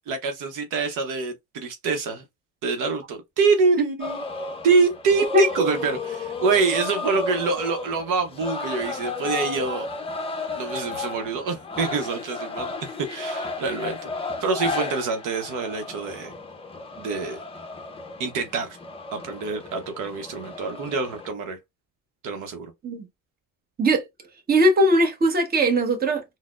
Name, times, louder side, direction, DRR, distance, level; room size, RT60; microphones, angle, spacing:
voice 1, 0.1-2.2 2.6-4.2 4.6-9.9 10.6-14.0 14.4-16.3 17.0-17.4 18.2-18.8 19.1-21.6 22.2-22.7, right 4 dB, 60° right, 0.8 m, -25 dB
sound 1, 4.0-21.3, left 3 dB, 15° left, 0.6 m, -33 dB
voice 2, 5.3-5.7 22.8-23.0 23.8-24.0 24.5-26.2, right 1 dB, 25° right, 0.9 m, -19 dB
3.9 x 2.1 x 2.4 m
cardioid pair, 105°, 36 cm